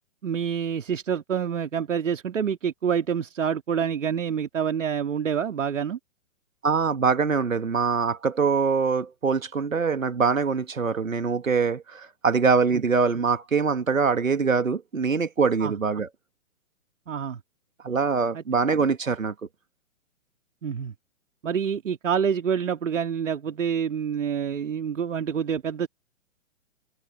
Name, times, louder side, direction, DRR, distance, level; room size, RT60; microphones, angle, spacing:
voice 1, 0.2-6.0 12.7-12.8 15.6-15.7 17.1-17.4 18.3-18.4 20.6-20.9 21.4-25.9, right 7 dB, 70° right, 2.7 m, -27 dB
voice 2, 6.6-16.1 17.8-19.3, right 5 dB, 90° right, 2.2 m, -23 dB
hypercardioid pair, 125°, 39 cm